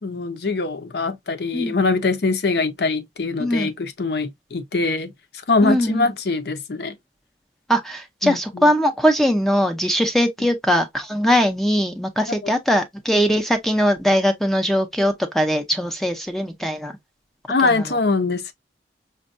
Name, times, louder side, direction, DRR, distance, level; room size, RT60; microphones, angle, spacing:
voice 1, 0.0-5.1 5.5-7.0 8.2-8.7 12.3-12.5 17.5-18.5, left 3 dB, 60° left, 0.6 m, -23 dB
voice 2, 3.4-3.7 5.6-6.1 7.7-16.9 17.6-17.8, equal, ahead, 0.5 m, -20 dB
5.2 x 2.2 x 2.5 m
head